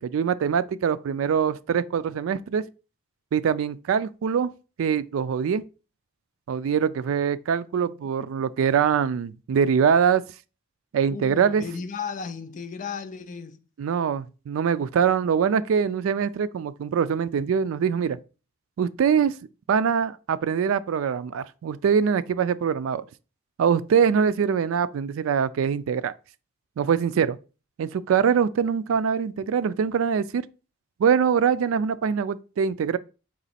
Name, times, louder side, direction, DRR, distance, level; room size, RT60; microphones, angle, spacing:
voice 1, 0.0-2.6 3.3-4.5 4.8-5.6 6.5-10.2 10.9-11.6 13.8-18.2 18.8-19.3 19.7-23.0 23.6-26.1 26.8-27.4 27.8-30.4 31.0-33.0, right 7 dB, 80° right, 0.3 m, -23 dB
voice 2, 11.1-13.6, left 5 dB, 40° left, 0.4 m, -35 dB
4.0 x 3.0 x 4.1 m
head